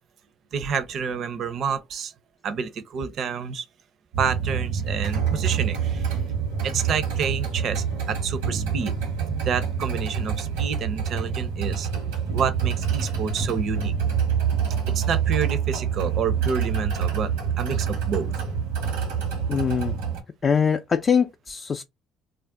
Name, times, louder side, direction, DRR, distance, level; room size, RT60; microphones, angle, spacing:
voice 1, 0.5-2.1 2.4-3.6 4.2-6.1 6.6-8.9 9.5-11.9 12.3-13.9 14.9-17.3 17.6-18.3, right 6 dB, 60° right, 0.5 m, -29 dB
sound 1, 4.1-20.2, right 7 dB, 90° right, 1.0 m, -26 dB
voice 2, 19.5-19.9 20.4-21.8, left 6 dB, 40° left, 0.3 m, -22 dB
2.4 x 2.1 x 3.6 m
hypercardioid pair, 65°, 0 cm